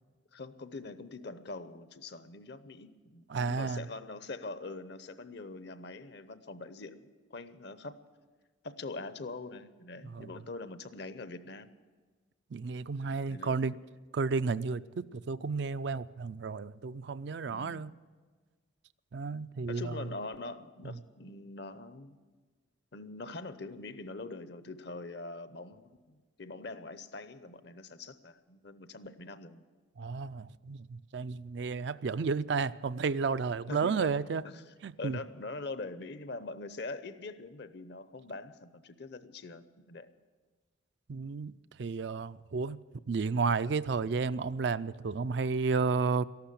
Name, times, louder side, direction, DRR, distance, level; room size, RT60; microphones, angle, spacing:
voice 1, 0.3-7.9 8.6-11.7 13.3-13.7 17.5-17.9 19.7-22.2 22.9-29.6 33.7-34.1 34.4-34.6 35.0-40.1, left 3 dB, 60° left, 0.8 m, -43 dB
voice 2, 3.3-3.8 10.0-10.3 12.5-13.8 14.1-17.9 19.1-19.9 20.8-20.9 30.0-34.4 34.8-35.2 41.1-41.5 41.8-42.8 43.1-46.3, right 4 dB, 60° right, 0.4 m, -32 dB
14.0 x 12.0 x 8.4 m
head